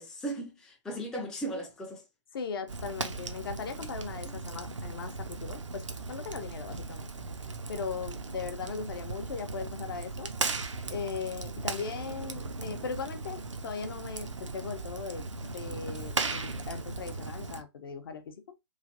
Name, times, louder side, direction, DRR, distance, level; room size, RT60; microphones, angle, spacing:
voice 1, 0.0-2.0 4.2-4.3, right 1 dB, 5° left, 0.4 m, -37 dB
voice 2, 2.3-7.1 7.7-10.3 10.9-18.4, left 5 dB, 50° left, 0.6 m, -38 dB
Fire, 2.7-17.6, right 3 dB, 80° right, 0.5 m, -37 dB
3.2 x 2.5 x 2.5 m
figure-of-eight pair, 125°, 15 cm